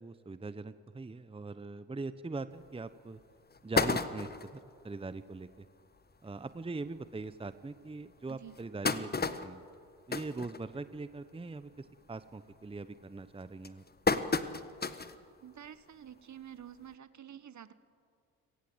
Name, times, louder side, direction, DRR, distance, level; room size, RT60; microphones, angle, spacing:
voice 1, 0.0-3.2 3.6-5.7 6.2-9.6 10.1-13.8, right 3 dB, 15° right, 13 dB, 1.0 m, -42 dB
sound 1, 2.6-2.7 3.2-3.3 3.5-4.6 5.1-5.2 5.5-5.6 5.9-6.1 6.8-6.9 7.4-7.5 8.3-11.1 11.5-11.8 12.2-12.6 13.2-15.2 15.6-15.7 16.9-17.0, left 4 dB, 20° left, 1.3 m, -32 dB
voice 2, 15.4-17.7, right 9 dB, 40° right, 14 dB, 1.4 m, -49 dB
30.0 x 18.0 x 8.0 m, 2.3 s
hypercardioid pair, 60°, 42 cm